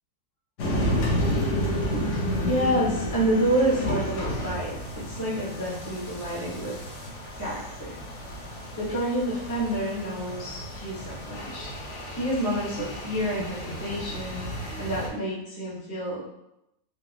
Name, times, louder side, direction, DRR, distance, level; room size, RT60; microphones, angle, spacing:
sound 1, 0.6-15.1, equal, 60° left, 1.0 m, -31 dB
voice 1, 2.4-6.8 7.4-7.9 8.8-11.7 12.1-14.4 14.8-16.3, right 1 dB, 15° left, -8 dB, 0.9 m, -28 dB
4.4 x 2.2 x 2.8 m, 0.86 s
omnidirectional pair, 1.6 m